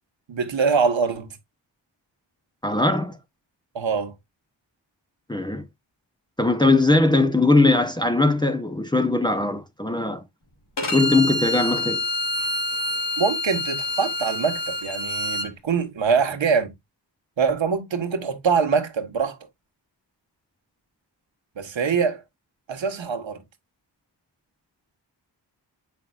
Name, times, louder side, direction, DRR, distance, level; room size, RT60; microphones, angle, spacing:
voice 1, 0.3-1.4 3.7-4.1 13.2-16.7 17.4-19.4 21.6-22.2 22.7-23.4, right 5 dB, 85° right, 1.4 m, -24 dB
voice 2, 2.6-3.2 5.3-5.6 6.4-10.2 10.8-12.0, left 2 dB, 10° left, 0.9 m, -20 dB
Bowed string instrument, 10.8-15.5, left 1 dB, 70° left, 2.5 m, -27 dB
7.5 x 5.8 x 2.4 m
wide cardioid pair, 60°, 44 cm